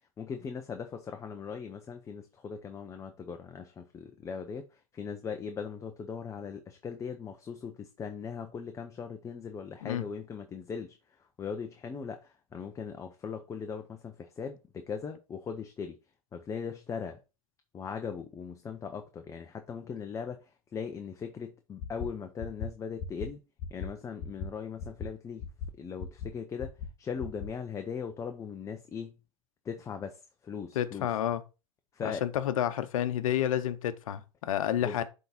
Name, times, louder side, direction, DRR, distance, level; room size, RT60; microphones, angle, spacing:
voice 1, 0.2-16.0 16.3-17.2 17.7-23.4 23.7-25.4 25.8-26.7 27.0-29.2 29.6-31.1 31.9-32.2 34.8-35.0, left 6 dB, 15° left, 0.6 m, -39 dB
sound 1, 21.8-22.1 22.4-22.7 23.0-23.3 23.6-23.9 24.2-24.5 24.8-25.1 25.4-25.7 26.0-26.3 26.6-26.9 27.2-27.5, left 6 dB, 35° left, 2.3 m, -37 dB
voice 2, 30.7-31.4 32.0-35.0, left 11 dB, 65° left, 0.9 m, -30 dB
7.8 x 3.7 x 4.2 m
hypercardioid pair, 115°, 18 cm